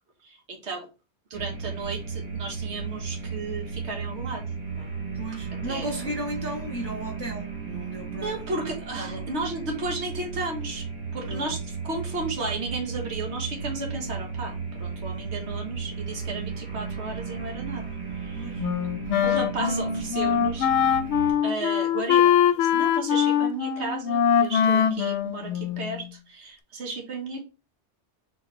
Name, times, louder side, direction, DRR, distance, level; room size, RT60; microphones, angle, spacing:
voice 1, 0.2-0.9 1.3-4.4 4.8-4.9 5.7-5.9 8.2-10.9 11.1-17.8 18.2-18.9 19.2-20.7 21.4-27.4, right 3 dB, 75° right, 3 dB, 1.4 m, -34 dB
sound 1, 1.3-21.3, right 5 dB, 40° right, 1.1 m, -35 dB
voice 2, 5.1-8.4 9.0-9.3 11.3-11.6 18.4-18.6, equal, 15° left, -1 dB, 0.8 m, -35 dB
Wind instrument woodwind instrument, 18.6-26.1, left 8 dB, 80° left, 0.8 m, -23 dB
4.1 x 3.7 x 3.1 m, 0.31 s
omnidirectional pair, 1.1 m